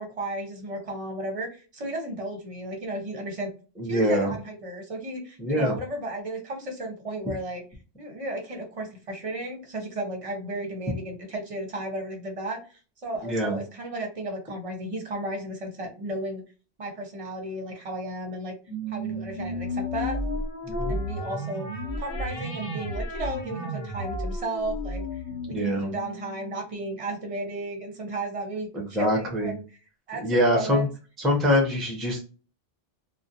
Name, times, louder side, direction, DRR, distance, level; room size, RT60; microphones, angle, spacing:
voice 1, 0.0-3.5 3.8-7.6 8.0-16.4 16.8-18.5 18.9-20.2 20.9-21.7 22.0-29.6 30.1-30.9, right 1 dB, 40° right, 2 dB, 0.7 m, -34 dB
voice 2, 3.8-4.3 5.4-5.7 13.2-13.6 20.7-20.9 25.5-25.9 28.7-29.5 30.2-30.9 31.2-32.3, left 1 dB, ahead, 0 dB, 0.5 m, -24 dB
sound 1, 18.7-27.4, equal, 65° left, 1.0 m, -33 dB
2.4 x 2.1 x 2.6 m, 0.36 s
omnidirectional pair, 1.1 m